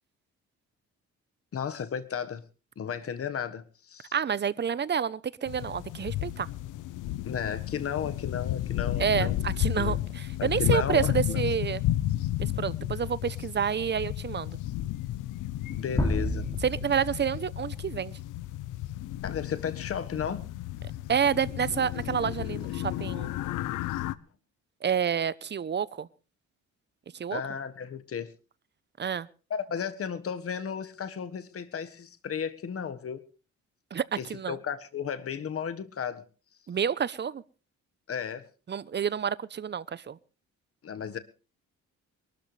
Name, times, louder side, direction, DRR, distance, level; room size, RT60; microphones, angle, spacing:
voice 1, 1.5-2.4 2.8-4.1 7.2-9.4 9.8-10.0 10.4-11.4 15.7-16.5 19.2-20.5 27.3-28.3 29.5-33.2 34.2-36.2 38.1-38.5 40.8-41.2, left 7 dB, 50° left, 11 dB, 1.6 m, -34 dB
voice 2, 4.1-6.5 9.0-11.8 12.4-14.6 16.6-18.2 21.1-23.3 24.8-26.1 27.1-27.4 29.0-29.3 33.9-34.0 34.3-34.6 36.7-37.4 38.7-40.2, right 7 dB, 35° right, 18 dB, 0.8 m, -29 dB
sound 1, 5.5-24.2, left 14 dB, 90° left, 0.8 m, -32 dB
sound 2, 16.0-17.9, left 1 dB, 15° left, 2.7 m, -31 dB
23.0 x 13.0 x 3.3 m, 0.35 s
cardioid pair, 90°, 30 cm